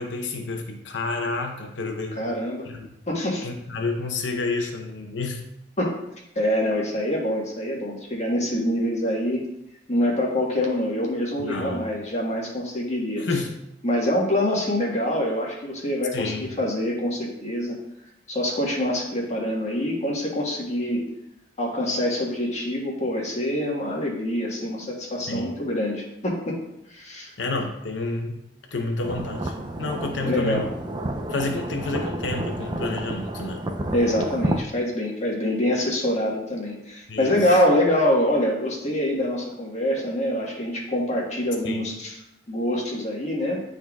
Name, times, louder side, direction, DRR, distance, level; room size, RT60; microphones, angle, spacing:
voice 1, 0.0-2.2 2.6-2.9 3.4-5.4 11.4-11.9 13.2-13.5 16.1-16.5 25.3-25.6 27.4-28.4 28.7-29.5 29.8-30.7 31.3-33.6 37.1-37.6 41.6-41.9, left 3 dB, 85° left, 2 dB, 0.8 m, -29 dB
voice 2, 2.1-2.7 3.1-3.5 5.8-6.0 6.3-9.4 9.9-13.3 13.8-17.8 18.3-21.0 21.6-26.6 26.9-27.3 30.2-30.7 33.9-42.2 42.5-43.6, left 1 dB, 40° left, -2 dB, 1.4 m, -25 dB
sound 1, 29.0-34.6, right 1 dB, 25° right, 0.4 m, -30 dB
11.0 x 3.8 x 2.3 m, 0.84 s
head